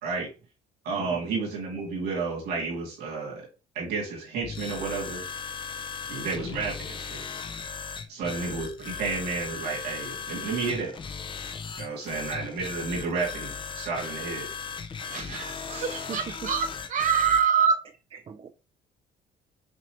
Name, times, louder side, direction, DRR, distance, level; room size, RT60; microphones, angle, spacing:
voice 1, 0.8-3.4 3.7-5.2 6.1-7.2 8.1-10.9 11.8-14.5, right 4 dB, 75° right, 2.7 m, -31 dB
sound 1, 4.4-17.5, left 6 dB, 30° left, 0.5 m, -37 dB
voice 2, 15.1-17.8, right 7 dB, 50° right, 1.0 m, -25 dB
voice 3, 15.7-16.3 18.3-18.5, right 6 dB, 35° right, 0.5 m, -41 dB
6.1 x 2.7 x 3.1 m
cardioid pair, 110°, 17 cm